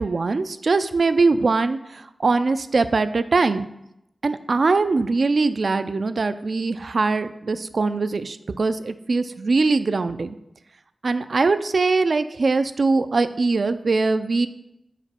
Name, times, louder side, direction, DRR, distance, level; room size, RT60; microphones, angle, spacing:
voice 1, 0.0-3.7 4.2-10.4 11.0-14.5, right 3 dB, 70° right, 11 dB, 0.3 m, -22 dB
5.0 x 4.4 x 4.2 m, 0.82 s
cardioid pair, 50°, 0 cm